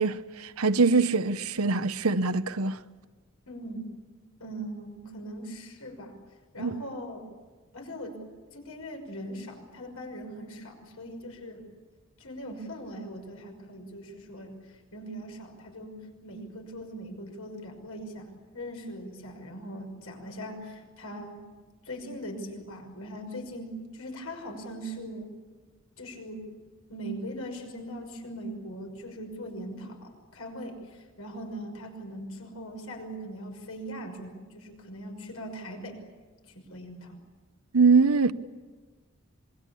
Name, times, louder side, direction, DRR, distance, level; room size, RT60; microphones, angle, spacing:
voice 1, 0.0-2.8 6.6-6.7 37.7-38.3, right 4 dB, 85° right, 0.9 m, -23 dB
voice 2, 3.5-3.9 4.4-6.1 6.5-7.3 7.7-8.2 8.5-11.7 12.2-14.6 14.9-21.4 21.8-25.4 26.0-26.5 26.9-36.0 36.5-37.2, equal, 85° left, 6.1 m, -40 dB
26.5 x 22.5 x 8.5 m
head